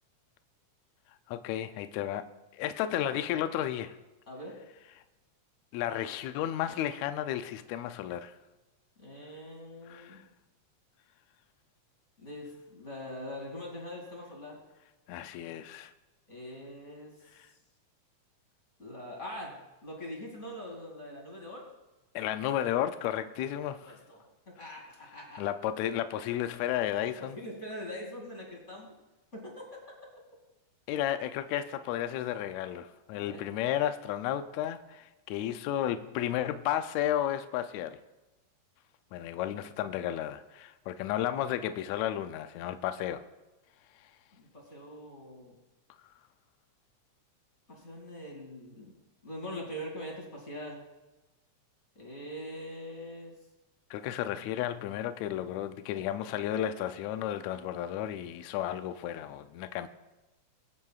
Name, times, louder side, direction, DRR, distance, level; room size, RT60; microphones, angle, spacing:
voice 1, 1.3-2.3 2.5-4.0 5.7-8.3 9.9-10.2 15.1-15.9 22.1-24.0 25.4-27.4 30.9-38.0 39.1-43.2 44.0-44.1 53.9-59.9, left 11 dB, 80° left, 1.8 m, -33 dB
voice 2, 4.3-4.6 9.0-10.3 12.2-14.6 16.3-17.1 18.8-21.6 23.8-25.4 27.2-28.9 29.3-29.6 33.1-33.4 44.3-45.6 47.7-48.9 49.2-50.8 51.9-53.4, equal, 25° left, 2.7 m, -43 dB
24.0 x 8.3 x 2.4 m
omnidirectional pair, 3.4 m